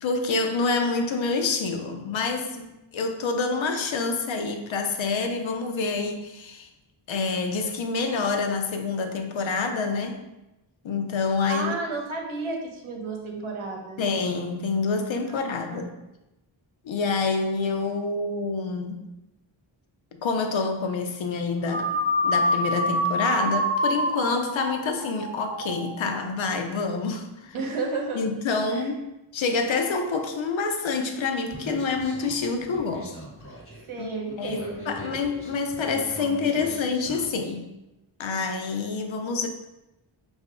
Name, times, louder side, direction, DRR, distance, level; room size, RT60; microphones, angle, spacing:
voice 1, 0.0-6.7 7.1-10.2 10.8-11.8 14.0-15.9 16.8-19.0 20.1-27.5 28.1-29.0 29.3-33.1 34.0-34.1 34.4-37.7 38.2-39.5, left 4 dB, 70° left, 5 dB, 0.6 m, -27 dB
voice 2, 11.5-14.0 15.3-15.4 15.7-15.8 27.5-28.2 28.7-28.9 33.9-34.9, right 3 dB, 90° right, 1 dB, 0.9 m, -32 dB
sound 1, 21.7-26.2, equal, 20° right, 0.4 m, -26 dB
Human voice, 31.5-37.5, right 1 dB, 30° left, 1.4 m, -41 dB
4.7 x 2.6 x 3.5 m, 0.96 s
wide cardioid pair, 100°, 48 cm